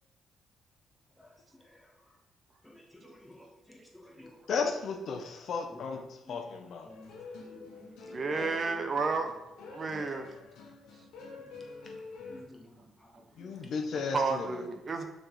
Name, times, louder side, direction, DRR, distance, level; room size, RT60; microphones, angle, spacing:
voice 1, 2.6-4.3 6.3-6.4 6.9-8.2 11.4-11.7 12.3-13.1 13.4-13.5, left 1 dB, 5° left, -1 dB, 1.7 m, -54 dB
voice 2, 4.5-6.9 8.3-8.6 13.4-14.6, left 5 dB, 65° left, 4 dB, 0.9 m, -35 dB
sound 1, 6.9-12.4, left 3 dB, 85° left, 1.3 m, -47 dB
voice 3, 8.1-9.3 9.7-10.3 14.1-15.0, right 4 dB, 40° right, 6 dB, 0.8 m, -32 dB
6.3 x 4.3 x 4.8 m, 0.98 s
cardioid pair, 90°, 0 cm